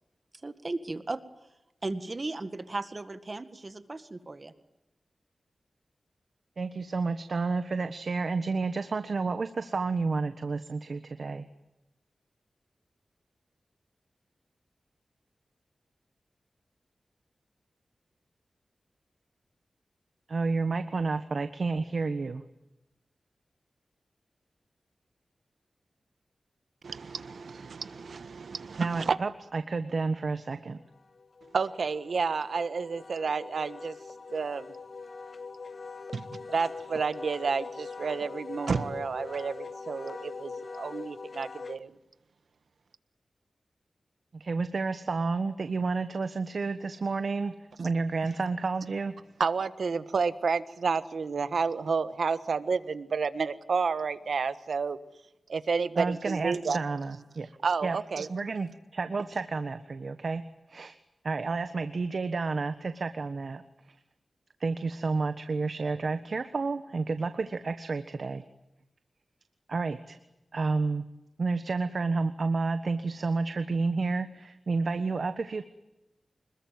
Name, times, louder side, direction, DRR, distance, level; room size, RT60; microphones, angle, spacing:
voice 1, 0.4-1.2 1.8-4.5, right 2 dB, 35° right, 1.9 m, -36 dB
voice 2, 6.6-11.4 20.3-22.4 28.8-30.8 44.3-47.5 47.8-49.2 56.0-57.5 57.8-58.0 58.3-60.4 60.7-61.0 61.2-63.6 64.6-68.4 69.7-70.2 70.5-71.0 71.4-75.6, right 4 dB, 60° right, 1.4 m, -30 dB
voice 3, 26.8-29.2 31.5-34.0 34.3-34.7 36.1-42.0 47.8-47.9 49.4-55.0 55.5-56.8 57.6-58.3, right 5 dB, 80° right, 1.4 m, -30 dB
Wind instrument woodwind instrument, 30.8-41.8, left 4 dB, 50° left, 1.1 m, -43 dB
26.0 x 21.5 x 9.5 m
wide cardioid pair, 100°, 0 cm